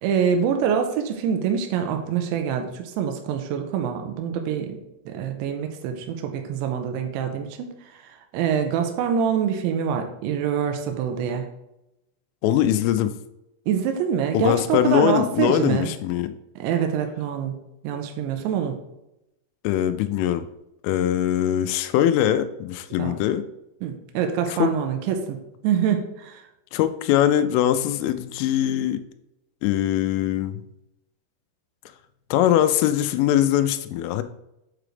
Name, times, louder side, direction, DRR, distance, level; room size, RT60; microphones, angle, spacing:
voice 1, 0.0-4.8 5.1-7.7 8.3-11.5 13.7-15.9 16.6-17.6 17.8-18.8 23.0-23.1 23.8-25.4 25.6-26.4, right 8 dB, 85° right, 5 dB, 2.9 m, -25 dB
voice 2, 12.4-13.1 14.3-16.3 19.6-20.5 20.8-23.4 24.5-24.7 26.7-29.0 29.6-30.6 32.3-34.2, left 11 dB, 90° left, 10 dB, 3.1 m, -22 dB
7.6 x 4.9 x 3.3 m, 0.88 s
omnidirectional pair, 5.5 m